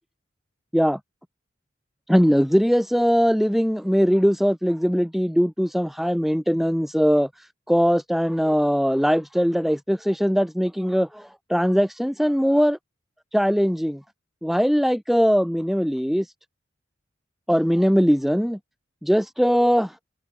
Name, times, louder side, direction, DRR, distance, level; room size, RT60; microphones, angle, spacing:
voice 1, 2.1-12.8 13.3-14.0 14.4-16.3 17.5-18.6 19.0-20.0, equal, ahead, 4.0 m, -21 dB
head